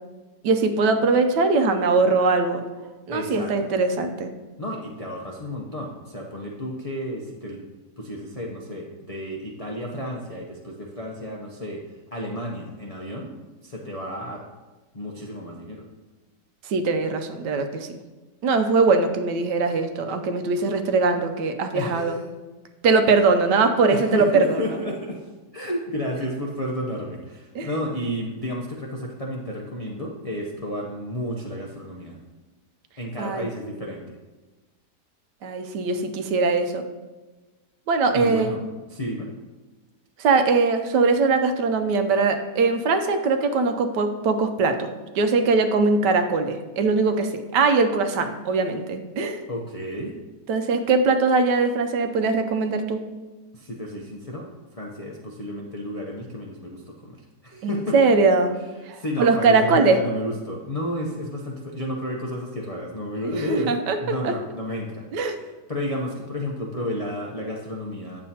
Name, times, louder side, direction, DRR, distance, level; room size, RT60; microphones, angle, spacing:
voice 1, 0.4-2.6 3.1-4.3 16.6-18.0 18.4-22.2 22.8-24.6 27.5-27.7 33.2-33.5 35.4-36.8 37.9-38.6 40.2-44.9 45.1-49.4 50.5-53.0 57.6-58.5 58.9-60.0 63.2-64.3 65.1-65.4, right 4 dB, 80° right, 7 dB, 1.3 m, -21 dB
voice 2, 3.1-3.7 4.6-7.6 8.0-11.8 12.1-13.3 13.6-14.4 14.9-15.9 21.7-22.2 23.9-32.2 33.0-34.2 38.1-38.6 38.9-39.3 49.5-50.2 53.5-58.0 58.9-68.2, equal, 70° left, -1 dB, 0.3 m, -32 dB
8.9 x 7.4 x 2.8 m, 1.2 s
omnidirectional pair, 1.9 m